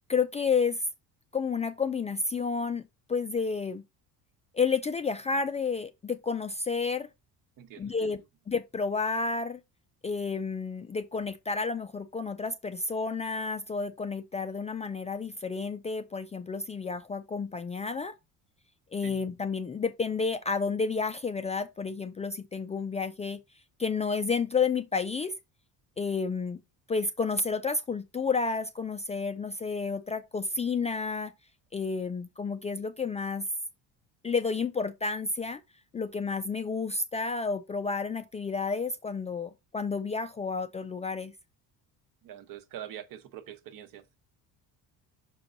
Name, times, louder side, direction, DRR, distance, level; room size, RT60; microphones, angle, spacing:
voice 1, 0.1-0.8 1.3-2.8 3.1-3.8 4.5-7.1 7.8-8.2 8.5-9.6 10.0-18.1 18.9-23.4 23.8-25.3 26.0-26.6 26.9-31.3 31.7-33.5 34.2-35.6 35.9-41.3, left 4 dB, 20° left, 0.3 m, -30 dB
voice 2, 7.6-8.1 19.0-19.2 42.2-44.1, right 10 dB, 60° right, 1.0 m, -44 dB
6.1 x 4.7 x 3.8 m
cardioid pair, 145°, 38 cm